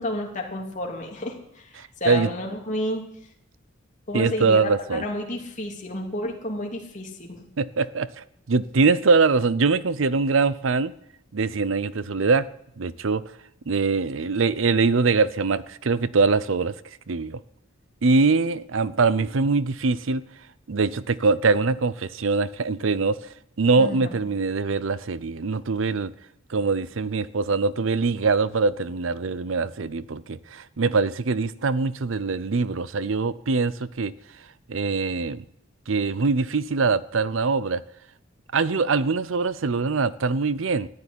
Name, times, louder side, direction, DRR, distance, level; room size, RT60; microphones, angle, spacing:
voice 1, 0.0-1.6 2.0-3.0 4.1-7.3 23.8-24.2, left 1 dB, 40° left, 3.2 m, -31 dB
voice 2, 1.8-2.3 4.1-5.0 7.6-10.9 11.3-12.5 12.8-13.2 13.7-16.7 17.1-17.4 18.0-20.2 20.7-26.1 26.5-34.1 34.7-35.4 35.9-37.8 38.5-40.9, right 4 dB, 70° right, 0.6 m, -23 dB
14.0 x 9.8 x 9.8 m
head